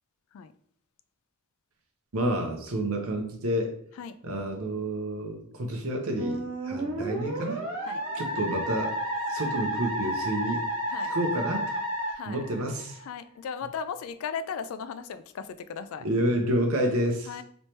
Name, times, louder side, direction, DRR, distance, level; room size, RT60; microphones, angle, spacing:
voice 1, 2.1-3.7 4.2-7.6 8.1-8.9 9.3-10.7 11.0-11.8 12.2-13.0 16.0-17.3, right 1 dB, 75° right, 3 dB, 0.7 m, -29 dB
Musical instrument, 6.2-13.0, equal, 60° right, 1.4 m, -31 dB
voice 2, 12.1-12.4 13.1-16.1 17.3-17.4, left 6 dB, 70° left, 13 dB, 0.3 m, -36 dB
3.2 x 3.1 x 2.9 m, 0.62 s
head